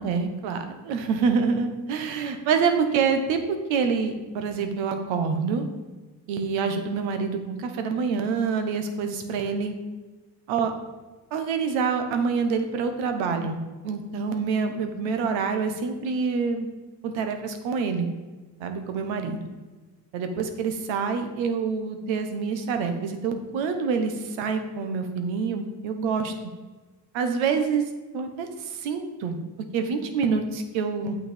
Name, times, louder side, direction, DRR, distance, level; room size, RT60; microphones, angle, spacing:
voice 1, 0.0-5.6 6.3-9.7 10.5-10.7 11.3-16.7 17.0-18.1 18.6-19.4 20.1-26.3 27.1-27.8 28.1-29.4 29.7-31.2, right 5 dB, 75° right, 7 dB, 1.3 m, -26 dB
8.8 x 6.8 x 5.2 m, 1.3 s
hypercardioid pair, 55°, 46 cm